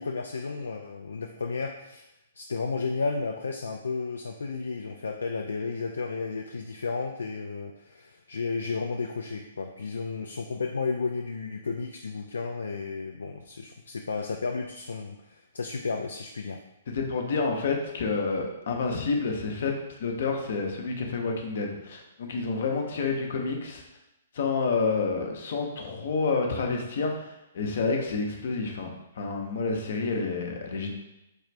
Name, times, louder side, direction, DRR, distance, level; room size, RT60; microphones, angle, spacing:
voice 1, 0.0-2.1 2.4-16.6, left 4 dB, 75° left, 3 dB, 0.3 m, -33 dB
voice 2, 16.9-23.8 24.3-30.9, left 4 dB, 60° left, 2 dB, 0.7 m, -29 dB
4.4 x 2.4 x 3.2 m, 0.91 s
figure-of-eight pair, 120°, 0 cm